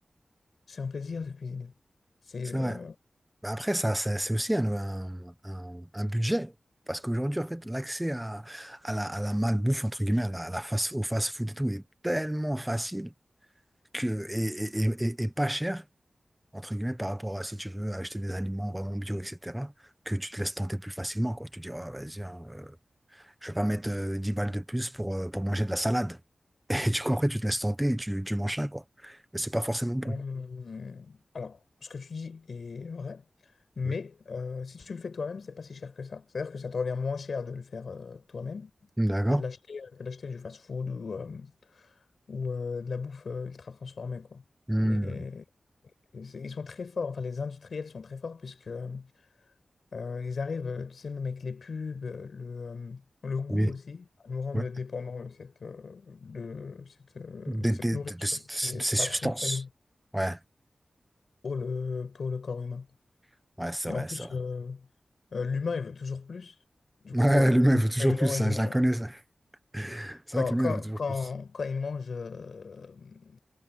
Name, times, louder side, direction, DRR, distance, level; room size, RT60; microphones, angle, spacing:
voice 1, 0.7-1.7 2.3-2.9 30.0-33.2 33.8-38.7 39.3-41.9 42.3-44.4 44.8-45.4 46.1-49.1 49.9-59.7 61.4-62.9 63.9-64.9 65.3-66.6 67.0-68.7 69.9-73.4, left 5 dB, 70° left, 7.2 m, -36 dB
voice 2, 3.4-6.5 6.9-13.1 13.9-15.8 16.5-19.7 20.0-22.8 23.1-26.2 26.7-30.2 33.8-33.9 39.0-39.4 44.7-45.2 53.5-53.7 54.5-54.7 57.5-59.6 60.1-60.4 63.6-64.3 67.1-69.1 69.7-71.0, right 1 dB, 10° right, 1.3 m, -29 dB
wide cardioid pair, 125°, 0 cm